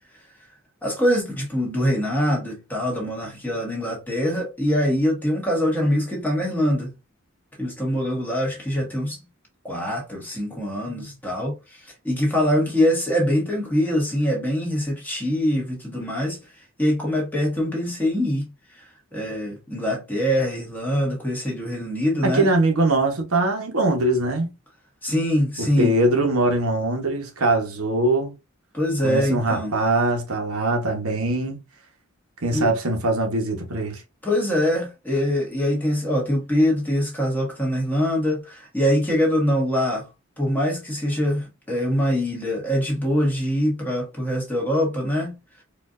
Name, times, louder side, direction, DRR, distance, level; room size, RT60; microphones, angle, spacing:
voice 1, 0.8-6.9 7.6-9.2 9.6-16.4 16.8-18.5 18.7-18.8 19.1-22.5 25.0-25.9 28.7-29.8 32.5-32.7 34.2-40.0 40.4-45.3, equal, 10° left, 1.3 m, -23 dB
voice 2, 22.2-24.5 25.6-28.3 29.0-31.6 32.4-34.0, right 2 dB, 90° right, 1.0 m, -22 dB
4.4 x 2.6 x 2.5 m
head